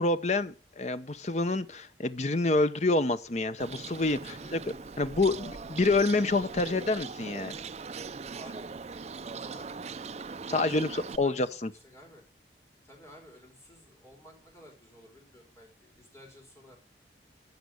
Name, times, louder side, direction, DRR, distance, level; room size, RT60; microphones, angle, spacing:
voice 1, 0.0-4.2 4.5-4.6 5.0-7.6 10.5-11.7, left 2 dB, 40° left, 0.8 m, -27 dB
Bird, 3.6-11.2, right 4 dB, 35° right, 0.5 m, -40 dB
voice 2, 4.2-4.6 8.4-8.7 9.3-9.7 10.4-12.2 12.8-16.8, left 1 dB, 15° left, 4.8 m, -53 dB
14.5 x 6.0 x 6.4 m
head